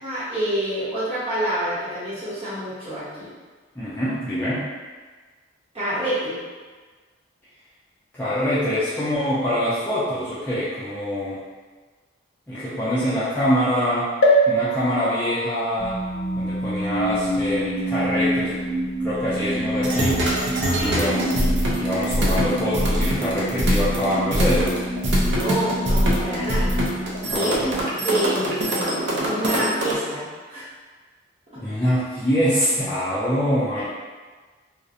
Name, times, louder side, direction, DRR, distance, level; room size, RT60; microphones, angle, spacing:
voice 1, 0.0-3.3 5.7-6.4 20.6-21.0 25.2-26.7 27.3-27.5 28.0-30.7 33.8-33.9, right 1 dB, 30° right, -11 dB, 0.9 m, -27 dB
voice 2, 3.8-4.7 8.1-11.4 12.5-14.1 14.5-16.0 16.3-20.3 20.7-24.8 27.3-27.8 31.6-33.9, equal, 10° left, -12 dB, 0.3 m, -24 dB
sound 1, 14.2-17.9 18.5-18.6 18.8-18.9, right 1 dB, 85° left, 0.4 m, -24 dB
sound 2, 15.8-27.9, equal, 40° left, 0.7 m, -28 dB
sound 3, 19.8-30.0, equal, 60° right, 0.4 m, -23 dB
2.4 x 2.0 x 2.6 m, 1.4 s
head